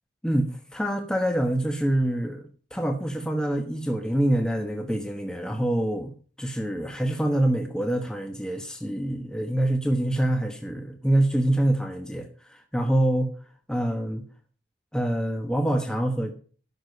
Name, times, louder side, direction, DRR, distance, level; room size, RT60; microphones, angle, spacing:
voice 1, 0.2-13.3 13.7-14.2 14.9-16.3, right 1 dB, 5° left, 4 dB, 1.1 m, -26 dB
11.5 x 6.8 x 6.5 m, 0.41 s
head